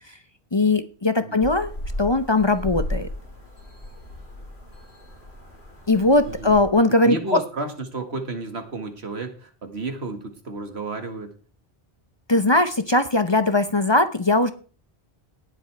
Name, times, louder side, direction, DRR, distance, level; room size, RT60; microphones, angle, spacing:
voice 1, 0.5-1.7 2.0-3.1 5.9-7.2 12.3-14.5, left 2 dB, 30° left, 10 dB, 0.8 m, -19 dB
sound 1, 1.4-6.7, left 1 dB, 80° left, 4.2 m, -35 dB
voice 2, 7.0-11.3, right 3 dB, 85° right, 6 dB, 2.1 m, -32 dB
18.0 x 7.9 x 3.4 m, 0.39 s
omnidirectional pair, 1.1 m